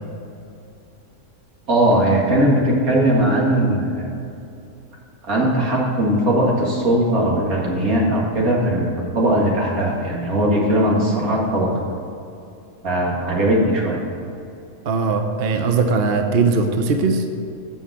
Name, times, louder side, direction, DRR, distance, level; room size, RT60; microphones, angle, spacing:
voice 1, 1.7-4.1 5.2-11.7 12.8-14.0, right 1 dB, 75° right, -3 dB, 2.3 m, -19 dB
voice 2, 14.8-17.3, right 4 dB, 50° right, 5 dB, 0.8 m, -19 dB
8.7 x 5.5 x 7.3 m, 2.6 s
omnidirectional pair, 1.5 m